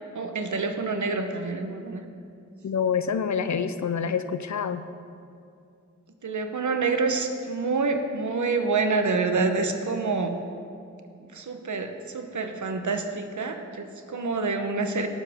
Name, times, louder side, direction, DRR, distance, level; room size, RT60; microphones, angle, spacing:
voice 1, 0.1-2.1 6.2-10.4 11.2-15.1, right 4 dB, 75° right, 6 dB, 1.0 m, -27 dB
voice 2, 2.6-4.8, left 7 dB, 70° left, 11 dB, 0.6 m, -27 dB
17.5 x 7.3 x 3.6 m, 2.4 s
cardioid pair, 50°, 30 cm